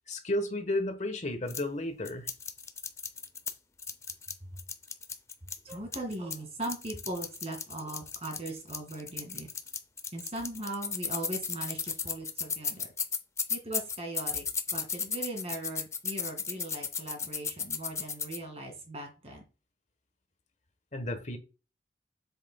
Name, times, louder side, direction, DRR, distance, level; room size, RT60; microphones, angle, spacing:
voice 1, 0.1-2.3 20.9-21.4, left 1 dB, 40° left, 1.2 m, -32 dB
sound 1, 1.5-1.6 2.1-3.5 3.8-6.4 6.6-18.4, left 6 dB, 15° left, 0.6 m, -34 dB
voice 2, 5.6-9.5 10.1-12.9 13.5-14.4 14.7-19.4, right 2 dB, 35° right, 2.2 m, -39 dB
7.5 x 7.1 x 2.3 m
head